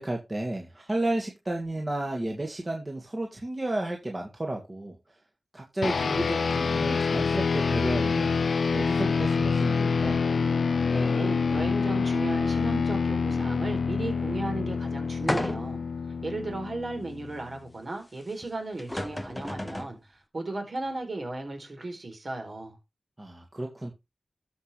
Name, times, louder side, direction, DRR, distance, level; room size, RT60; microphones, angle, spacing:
voice 1, 0.0-5.0 5.5-10.2 23.2-23.9, right 1 dB, 35° right, 2.2 m, -32 dB
sound 1, 5.8-17.5, left 5 dB, 80° left, 0.4 m, -26 dB
voice 2, 10.9-15.8 16.2-22.8, right 2 dB, 60° right, 4.2 m, -35 dB
sound 2, 15.3-15.9 16.5-16.6 18.4-18.5 18.8-20.0, left 1 dB, 20° left, 0.6 m, -32 dB
13.0 x 5.9 x 3.3 m
cardioid pair, 45°, 0 cm